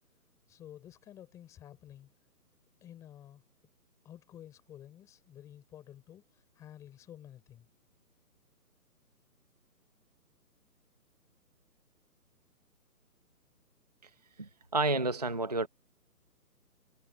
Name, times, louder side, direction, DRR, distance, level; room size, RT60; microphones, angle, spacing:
voice 1, 0.5-2.1 2.8-3.4 4.0-7.7, left 11 dB, 5° left, 4.4 m, -52 dB
voice 2, 14.4-15.7, right 2 dB, 25° right, 0.7 m, -30 dB
hypercardioid pair, 175°, 47 cm